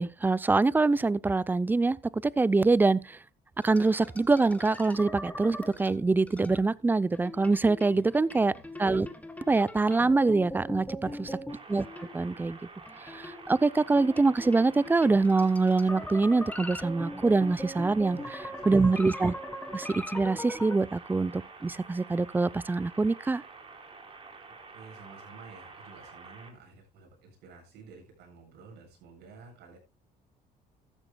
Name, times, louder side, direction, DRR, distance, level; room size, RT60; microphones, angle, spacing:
voice 1, 0.0-3.2 3.6-8.5 8.8-9.1 9.5-11.3 11.7-11.9 12.1-12.6 13.0-18.2 18.7-19.3 19.7-23.4, right 3 dB, 10° right, 0.4 m, -25 dB
sound 1, 3.6-6.6 7.1-12.4 12.8-20.8, left 1 dB, 10° left, 1.8 m, -41 dB
voice 2, 7.9-8.6 11.0-11.4 18.1-18.3 18.6-19.1 24.7-29.8, right 4 dB, 85° right, 7.8 m, -51 dB
sound 2, 11.5-26.5, right 4 dB, 35° right, 3.9 m, -49 dB
14.5 x 12.0 x 2.2 m
cardioid pair, 110°, 17 cm